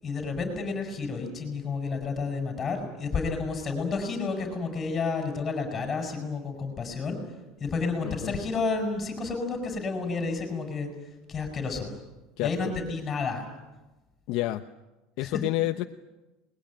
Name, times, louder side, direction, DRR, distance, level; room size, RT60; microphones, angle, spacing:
voice 1, 0.0-7.2 7.6-10.9 11.3-11.9 12.4-13.5 15.2-15.4, left 4 dB, 20° left, 5 dB, 7.1 m, -30 dB
voice 2, 8.0-8.4 12.4-12.7 14.3-14.6 15.2-15.8, left 16 dB, 60° left, 7 dB, 0.9 m, -29 dB
26.5 x 21.5 x 9.0 m, 1.1 s
cardioid pair, 150°, 0 cm